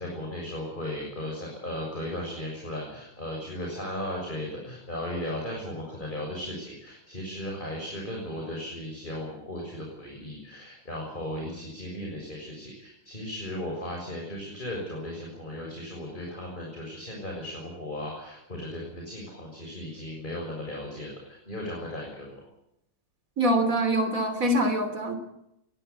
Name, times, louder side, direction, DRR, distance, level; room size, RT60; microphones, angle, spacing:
voice 1, 0.0-22.4, left 1 dB, 20° left, 0 dB, 6.6 m, -36 dB
voice 2, 23.4-25.1, right 1 dB, 40° right, 8 dB, 3.5 m, -24 dB
22.0 x 18.0 x 8.4 m, 0.82 s
omnidirectional pair, 2.3 m